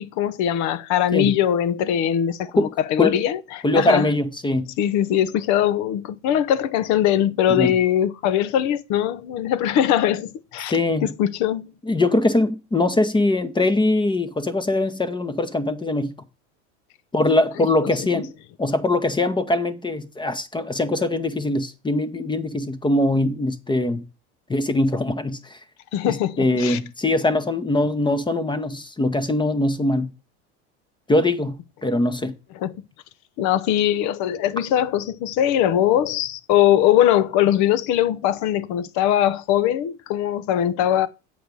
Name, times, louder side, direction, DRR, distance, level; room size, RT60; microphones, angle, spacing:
voice 1, 0.0-4.1 4.8-10.7 11.0-11.7 17.8-18.2 25.9-26.8 32.6-32.7 33.4-41.1, left 11 dB, 55° left, 0.8 m, -21 dB
voice 2, 3.6-4.7 7.5-7.8 10.7-11.1 11.9-16.1 17.1-18.3 18.6-24.0 24.5-25.6 26.0-30.1 31.1-32.4, left 2 dB, 15° left, 0.9 m, -22 dB
7.8 x 4.9 x 5.3 m
hypercardioid pair, 95°, 34 cm